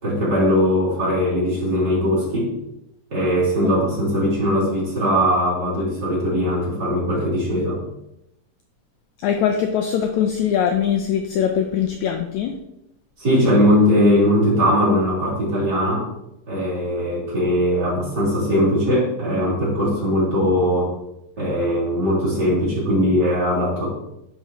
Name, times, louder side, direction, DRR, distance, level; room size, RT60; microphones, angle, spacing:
voice 1, 0.0-2.5 3.1-7.8 13.2-16.1 16.5-20.9 21.4-23.9, equal, 30° right, -7 dB, 3.2 m, -20 dB
voice 2, 9.2-12.6, left 8 dB, 85° left, 4 dB, 1.6 m, -21 dB
10.5 x 5.4 x 3.0 m, 0.84 s
omnidirectional pair, 3.9 m